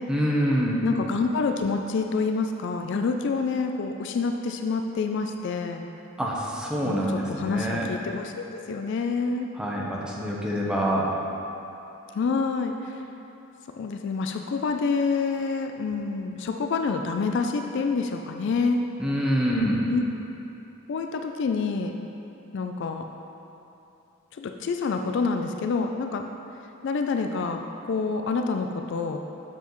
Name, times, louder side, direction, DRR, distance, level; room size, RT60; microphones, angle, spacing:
voice 1, 0.1-0.9 6.2-7.9 9.5-11.1 19.0-19.9, equal, 5° right, -4 dB, 0.7 m, -26 dB
voice 2, 0.8-5.8 6.8-7.0 7.3-9.5 12.1-13.0 13.8-18.8 19.9-20.0 20.9-21.9 22.5-23.0 24.3-26.2 26.8-29.2, left 4 dB, 55° left, 5 dB, 0.3 m, -27 dB
8.0 x 6.9 x 3.0 m, 2.9 s
head